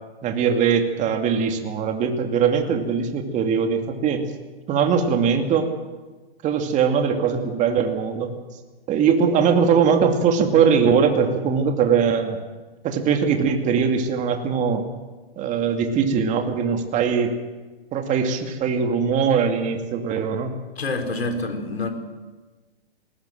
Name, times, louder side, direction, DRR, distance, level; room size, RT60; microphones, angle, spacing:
voice 1, 0.2-4.2 4.7-5.7 6.4-8.3 8.9-12.4 12.8-14.8 15.4-17.4 17.9-20.5, right 6 dB, 25° right, 5 dB, 2.5 m, -21 dB
voice 2, 20.8-21.9, left 2 dB, 80° left, 6 dB, 4.2 m, -27 dB
20.5 x 19.5 x 7.8 m, 1.3 s
hypercardioid pair, 125°, 31 cm